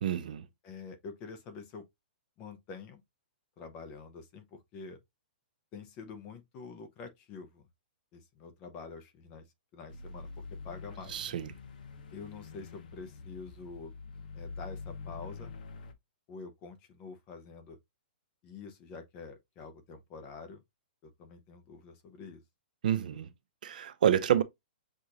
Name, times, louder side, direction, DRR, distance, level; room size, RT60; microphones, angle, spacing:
voice 1, 0.0-0.5 11.1-11.5 22.8-23.3 23.6-24.4, right 9 dB, 55° right, 0.5 m, -28 dB
voice 2, 0.6-1.9 2.4-3.0 3.6-5.0 5.7-7.7 8.1-9.5 9.7-11.2 12.1-13.9 14.4-15.5 16.3-17.8 18.4-20.6 21.0-22.4, left 4 dB, 20° left, 0.7 m, -47 dB
sound 1, 9.9-15.9, left 4 dB, 55° left, 0.9 m, -45 dB
6.3 x 2.5 x 2.8 m
hypercardioid pair, 175°, 6 cm